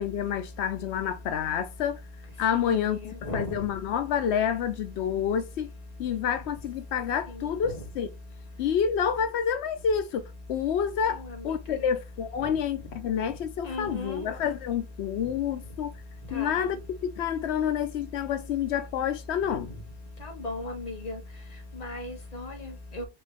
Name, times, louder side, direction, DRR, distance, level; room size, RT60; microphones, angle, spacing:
voice 1, 0.0-2.0 2.4-3.0 3.3-5.7 6.0-8.1 8.6-15.9 16.3-16.8 17.1-19.7, left 8 dB, 90° left, 0.9 m, -28 dB
voice 2, 2.5-3.0 3.2-3.6 12.4-12.5 13.6-14.3 16.3-16.5 20.2-21.2 21.8-23.0, left 2 dB, 40° left, 1.3 m, -36 dB
4.5 x 3.2 x 3.2 m
omnidirectional pair, 1.1 m